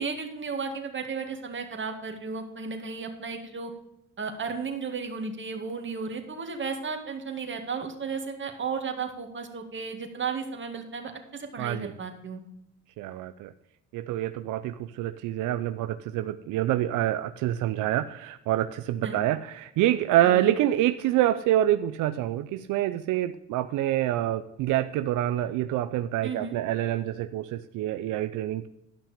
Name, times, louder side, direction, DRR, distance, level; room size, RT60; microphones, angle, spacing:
voice 1, 0.0-3.7 4.2-12.4 19.0-19.2 20.2-20.5 26.2-26.6, right 5 dB, 40° right, 5 dB, 2.1 m, -34 dB
voice 2, 11.6-11.9 13.0-13.5 13.9-28.7, right 13 dB, 90° right, 11 dB, 0.5 m, -26 dB
12.0 x 5.9 x 5.1 m, 0.83 s
cardioid pair, 90°, 30 cm